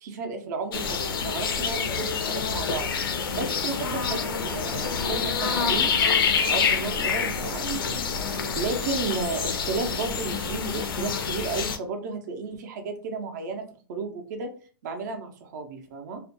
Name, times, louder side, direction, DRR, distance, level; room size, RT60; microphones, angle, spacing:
voice 1, 0.0-2.9 3.3-5.9 6.5-8.0 8.5-13.6 13.9-14.5 14.8-16.2, right 4 dB, 50° right, 4 dB, 0.5 m, -33 dB
sound 1, 0.7-11.8, left 6 dB, 65° left, 0.5 m, -27 dB
2.4 x 2.1 x 2.8 m, 0.40 s
hypercardioid pair, 150°, 12 cm